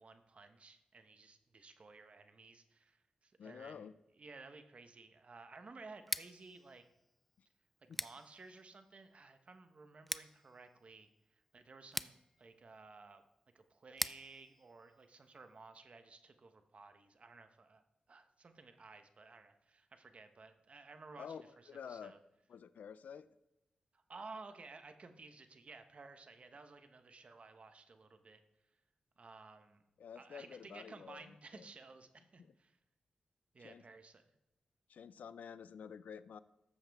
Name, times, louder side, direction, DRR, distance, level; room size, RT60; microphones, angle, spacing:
voice 1, 0.0-3.9 4.2-6.8 7.8-13.2 13.5-17.8 18.1-22.2 23.9-28.4 29.2-29.8 30.1-32.8 33.5-34.2, right 3 dB, 50° right, 8 dB, 0.9 m, -55 dB
voice 2, 3.4-3.9 7.9-8.0 21.2-21.4 21.7-22.1 22.5-23.3 30.0-31.7 32.4-32.5 33.6-33.8 34.9-36.4, left 7 dB, 90° left, 16 dB, 0.4 m, -50 dB
Scissors, 6.0-15.8, equal, 5° left, 0.3 m, -47 dB
13.5 x 7.3 x 3.5 m, 0.94 s
cardioid pair, 75°, 3 cm